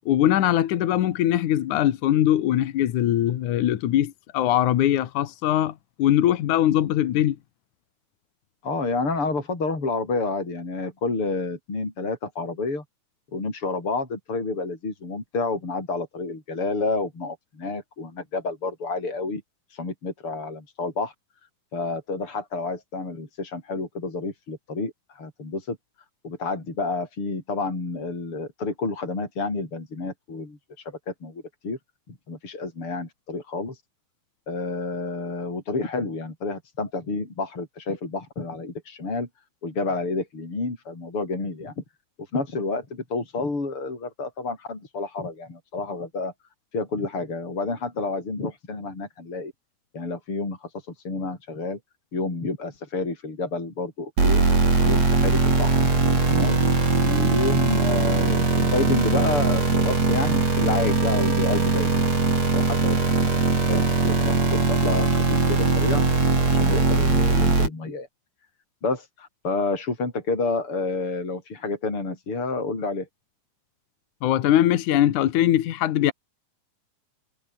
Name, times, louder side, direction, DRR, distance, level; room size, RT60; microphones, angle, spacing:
voice 1, 0.1-7.4 74.2-76.1, left 12 dB, 75° left, 2.8 m, -21 dB
voice 2, 8.6-12.8 13.3-19.4 19.7-21.1 21.7-25.8 26.2-30.6 30.8-31.8 32.1-33.8 34.5-39.3 39.6-41.8 42.3-46.3 46.7-49.5 49.9-50.7 51.0-51.8 52.1-54.4 54.8-55.8 56.3-56.6 57.0-62.1 62.5-63.0 63.7-66.1 66.5-68.1 68.8-73.1, left 3 dB, 45° left, 6.9 m, -29 dB
sound 1, 54.2-67.7, right 3 dB, 55° right, 7.5 m, -21 dB
omnidirectional pair, 3.5 m